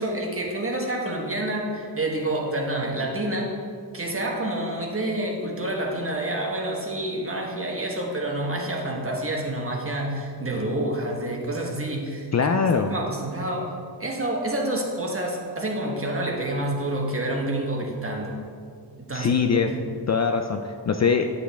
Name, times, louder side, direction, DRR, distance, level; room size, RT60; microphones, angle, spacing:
voice 1, 0.0-3.5 3.9-12.6 12.9-13.7 14.0-18.4 19.0-20.0, right 1 dB, 30° right, 0 dB, 1.3 m, -28 dB
voice 2, 12.3-12.9 19.1-19.7 20.1-21.2, left 5 dB, 40° left, 5 dB, 0.4 m, -22 dB
9.2 x 6.8 x 3.4 m, 2.2 s
wide cardioid pair, 100°, 43 cm